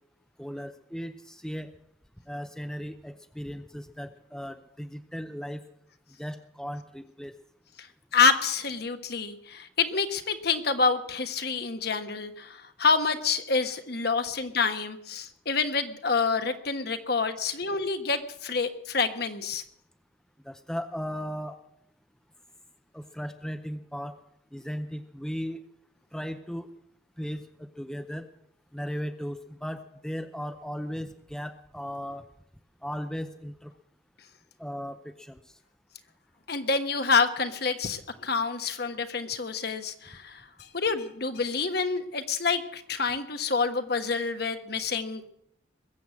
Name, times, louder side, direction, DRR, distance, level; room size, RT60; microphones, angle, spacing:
voice 1, 0.4-1.7 2.3-5.6 6.2-7.3 20.4-21.6 22.9-24.2 24.5-25.6 26.1-26.7 27.2-28.3 28.7-32.3 32.8-33.7 34.6-35.4, equal, 5° left, 8 dB, 0.6 m, -36 dB
voice 2, 8.1-19.6 36.5-45.3, left 4 dB, 55° left, 8 dB, 1.3 m, -27 dB
21.5 x 7.9 x 8.5 m, 0.72 s
head